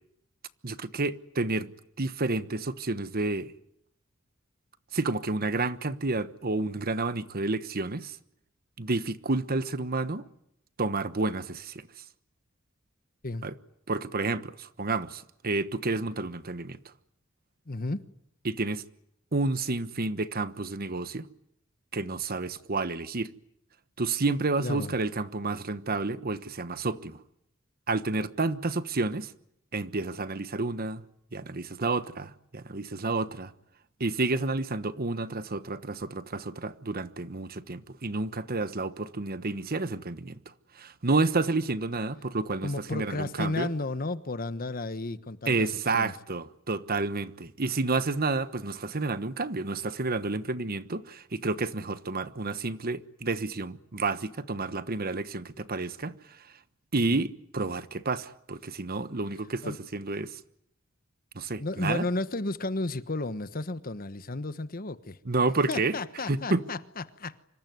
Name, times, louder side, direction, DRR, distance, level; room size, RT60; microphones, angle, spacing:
voice 1, 0.6-1.7 2.0-3.5 4.9-8.2 8.8-10.3 10.8-11.8 13.4-13.5 13.9-16.8 18.4-18.8 19.3-21.3 21.9-23.3 24.0-27.2 27.9-29.3 29.7-31.0 31.3-33.5 34.0-40.4 40.7-43.7 45.5-56.1 56.9-60.4 61.3-62.1 65.2-66.0 66.3-66.6, right 3 dB, 45° right, 1.2 m, -30 dB
voice 2, 17.7-18.0 24.6-24.9 42.6-45.7 45.9-46.1 57.1-57.2 59.6-59.8 61.6-65.2 65.7-67.4, left 2 dB, 45° left, 1.2 m, -33 dB
26.0 x 23.0 x 9.5 m
head